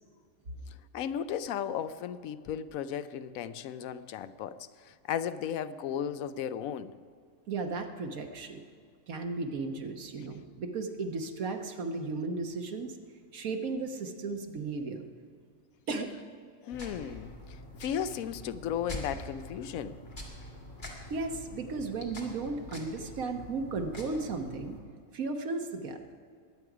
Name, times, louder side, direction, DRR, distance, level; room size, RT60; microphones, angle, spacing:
voice 1, 0.7-6.9 16.6-20.0, left 9 dB, 90° left, 1.0 m, -35 dB
voice 2, 7.5-8.6 9.1-13.0 13.3-15.0 15.9-16.1 21.1-24.7 25.1-26.0, right 3 dB, 90° right, 1.5 m, -35 dB
sound 1, 16.7-24.8, left 1 dB, 35° left, 2.1 m, -45 dB
21.0 x 9.2 x 4.9 m
omnidirectional pair, 1.4 m